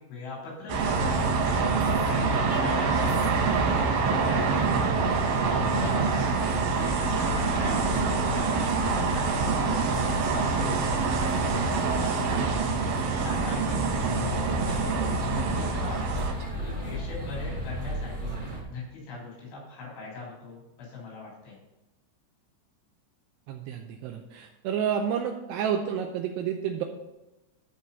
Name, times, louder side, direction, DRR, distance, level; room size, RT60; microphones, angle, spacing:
voice 1, 0.1-6.3 6.7-8.8 9.1-11.5 11.8-12.9 13.2-16.3 16.6-18.4 18.7-21.6, left 3 dB, 80° left, -5 dB, 5.8 m, -40 dB
sound 1, 0.7-18.6, equal, 25° right, 0.9 m, -34 dB
sound 2, 0.7-16.3, right 4 dB, 65° right, 2.4 m, -26 dB
voice 2, 23.5-26.8, right 8 dB, 85° right, 4 dB, 2.5 m, -30 dB
13.0 x 4.8 x 5.5 m, 0.99 s
omnidirectional pair, 5.4 m